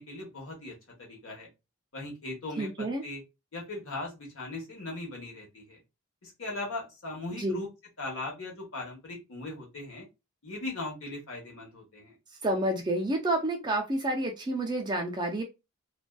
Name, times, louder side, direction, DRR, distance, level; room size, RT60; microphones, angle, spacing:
voice 1, 0.0-1.5 1.9-3.2 3.5-5.8 6.2-7.7 8.0-10.0 10.4-12.2, left 2 dB, 65° left, -2 dB, 1.0 m, -39 dB
voice 2, 2.6-3.0 7.4-7.6 12.4-15.4, right 1 dB, 20° right, 1 dB, 0.4 m, -29 dB
2.5 x 2.2 x 2.2 m, 0.25 s
head